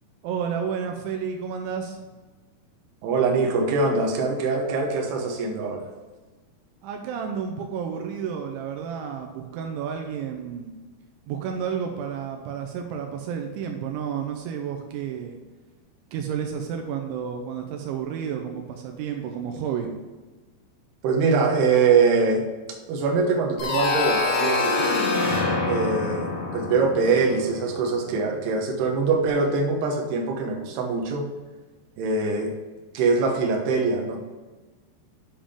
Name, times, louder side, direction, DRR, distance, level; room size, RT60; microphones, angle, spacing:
voice 1, 0.2-2.0 6.8-10.7 11.3-15.4 16.1-19.9, right 7 dB, 85° right, 4 dB, 3.0 m, -31 dB
voice 2, 3.0-5.8 21.0-22.4 22.9-25.0 25.6-26.3 26.5-31.3 32.0-32.5 32.9-34.2, right 4 dB, 70° right, 1 dB, 3.0 m, -23 dB
sound 1, 23.6-28.2, left 3 dB, 55° left, 1.4 m, -26 dB
8.7 x 7.3 x 3.7 m, 1.3 s
omnidirectional pair, 5.4 m